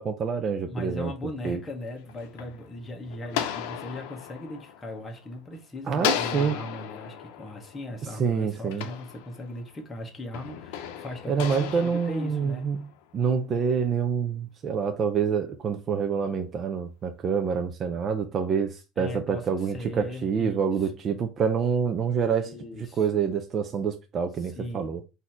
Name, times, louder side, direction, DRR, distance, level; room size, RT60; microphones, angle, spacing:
voice 1, 0.0-1.1 1.4-1.6 5.9-6.6 8.2-8.9 11.3-12.8 13.1-22.5 22.8-25.0, right 6 dB, 35° right, 0.5 m, -27 dB
voice 2, 0.7-12.7 19.0-20.6 22.4-23.1 24.5-24.9, left 1 dB, 15° left, 1.2 m, -38 dB
sound 1, 1.8-5.5 6.0-9.7 10.3-13.0, left 9 dB, 85° left, 0.6 m, -35 dB
4.2 x 2.8 x 4.3 m
supercardioid pair, 125°, 0 cm